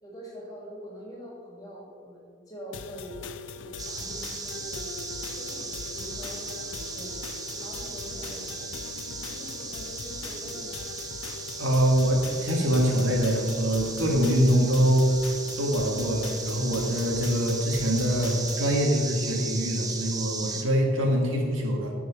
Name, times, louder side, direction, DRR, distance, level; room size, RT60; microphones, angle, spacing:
voice 1, 0.0-3.2 3.6-4.9 5.3-7.1 7.5-8.7 9.3-10.8, equal, 20° left, -4 dB, 2.3 m, -44 dB
sound 1, 2.7-18.7, left 5 dB, 70° left, 0.5 m, -41 dB
sound 2, 3.8-20.6, right 4 dB, 20° right, 0.6 m, -37 dB
voice 2, 11.6-15.1 15.6-21.9, equal, 85° right, 1 dB, 1.7 m, -24 dB
11.5 x 4.7 x 5.7 m, 2.2 s
head